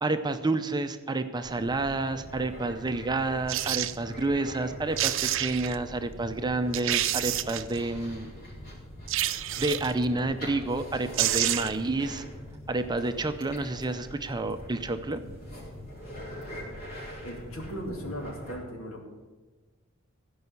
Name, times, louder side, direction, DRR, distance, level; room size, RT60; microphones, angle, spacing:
voice 1, 0.0-8.3 9.6-12.2 12.7-15.2, right 2 dB, 20° right, 9 dB, 0.6 m, -29 dB
sound 1, 1.4-18.6, equal, 45° left, 4.5 m, -43 dB
sound 2, 3.5-4.0 4.7-4.8 5.0-5.8 6.3-6.4 6.7-7.8 9.1-10.0 10.8-10.9 11.1-11.9 12.2-12.3, right 13 dB, 65° right, 0.6 m, -28 dB
voice 2, 17.2-19.0, equal, 75° left, 2 dB, 2.5 m, -37 dB
15.5 x 5.5 x 8.2 m, 1.3 s
head